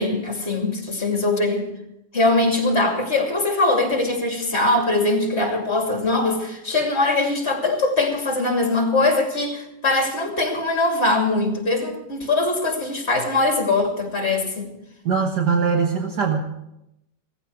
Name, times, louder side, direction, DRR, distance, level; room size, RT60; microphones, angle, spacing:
voice 1, 0.0-1.7 2.1-14.7, left 2 dB, 35° left, 2 dB, 3.0 m, -22 dB
voice 2, 15.1-16.4, right 5 dB, 65° right, 3 dB, 1.8 m, -21 dB
17.5 x 14.5 x 4.7 m, 0.85 s
omnidirectional pair, 1.9 m